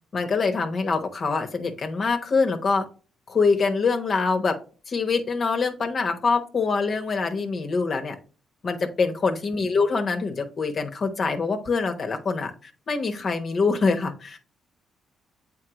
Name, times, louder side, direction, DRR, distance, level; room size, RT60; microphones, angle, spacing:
voice 1, 0.1-2.8 3.3-4.6 4.9-8.1 8.6-14.4, left 4 dB, 45° left, 5 dB, 0.9 m, -24 dB
7.5 x 4.2 x 2.9 m, 0.38 s
cardioid pair, 90°, 0 cm